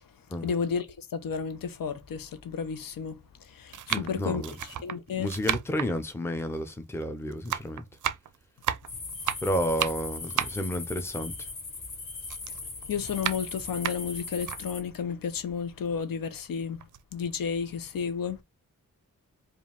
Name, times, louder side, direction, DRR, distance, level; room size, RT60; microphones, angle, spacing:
voice 1, 0.4-5.3 12.9-16.8 17.1-18.4, left 6 dB, 85° left, 0.8 m, -32 dB
sound 1, 0.9-1.0 1.9-2.0 2.9-3.2 3.7-7.1 7.3-11.9 12.2-14.6 15.1-15.2 15.5-16.5 16.8-17.0, right 10 dB, 65° right, 0.5 m, -34 dB
voice 2, 3.9-4.5 5.2-7.8 9.4-11.3, equal, 10° left, 0.5 m, -31 dB
sound 2, 8.9-14.8, left 3 dB, 65° left, 2.2 m, -39 dB
4.9 x 2.4 x 3.4 m
wide cardioid pair, 180°, 33 cm